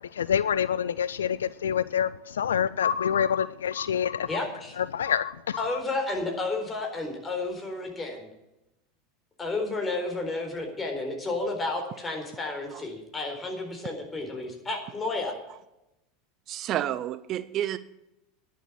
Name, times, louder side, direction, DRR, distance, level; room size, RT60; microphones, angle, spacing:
voice 1, 0.1-4.3 4.8-5.8, left 8 dB, 80° left, 0.3 m, -27 dB
voice 2, 4.3-4.7 5.6-8.3 9.4-15.3, left 2 dB, 20° left, 4.3 m, -31 dB
voice 3, 16.5-17.8, right 12 dB, 45° right, 0.6 m, -30 dB
11.0 x 7.3 x 9.8 m
hypercardioid pair, 85°, 0 cm